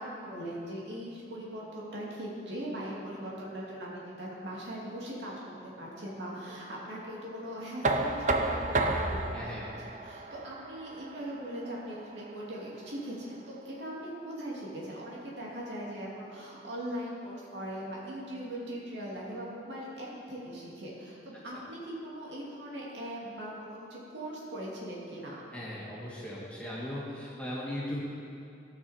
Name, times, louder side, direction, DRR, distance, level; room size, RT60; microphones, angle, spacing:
voice 1, 0.0-9.7 10.0-25.4, right 1 dB, 75° right, -5 dB, 2.5 m, -40 dB
Knock, 7.8-13.6, right 2 dB, 40° right, 0.6 m, -33 dB
voice 2, 9.3-9.7 25.5-28.0, left 1 dB, 5° left, -7 dB, 2.1 m, -38 dB
17.0 x 6.4 x 4.4 m, 2.5 s
head